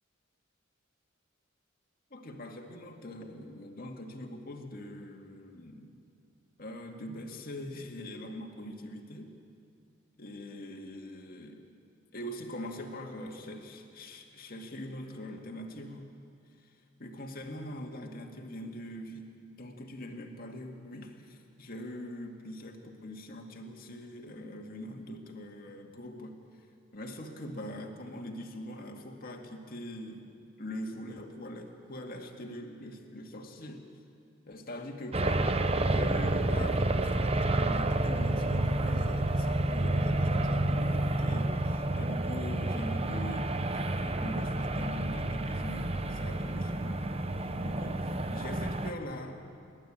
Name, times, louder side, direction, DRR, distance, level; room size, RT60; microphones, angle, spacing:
voice 1, 2.1-5.9 6.6-9.3 10.2-11.7 12.1-16.1 16.6-26.4 26.9-30.2 30.6-33.8 34.5-35.5 35.8-47.1 47.6-49.4, left 1 dB, 45° left, 2 dB, 2.2 m, -42 dB
sound 1, 35.1-48.9, right 1 dB, 30° right, 0.9 m, -29 dB
30.0 x 12.0 x 8.8 m, 2.4 s
head